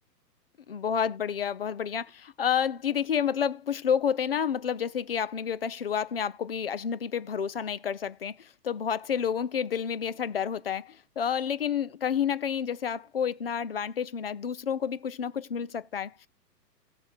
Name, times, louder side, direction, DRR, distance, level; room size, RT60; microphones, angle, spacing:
voice 1, 0.7-16.3, left 8 dB, 40° left, 0.4 m, -30 dB
17.5 x 7.0 x 2.5 m
figure-of-eight pair, 115°, 50 cm